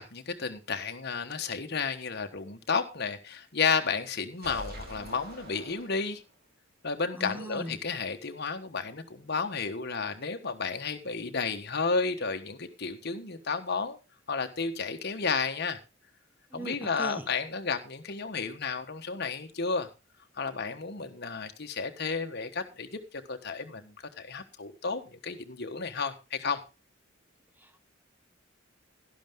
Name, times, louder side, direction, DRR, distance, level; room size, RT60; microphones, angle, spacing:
voice 1, 0.0-6.2 6.8-14.0 14.3-15.8 16.5-19.9 20.4-22.9 23.3-26.6, left 5 dB, 55° left, 1.4 m, -32 dB
sound 1, 4.4-6.4, equal, 50° right, 3.3 m, -45 dB
voice 2, 7.1-7.8 16.5-17.3 27.6-27.9, equal, 10° right, 1.4 m, -39 dB
12.0 x 11.5 x 3.7 m
head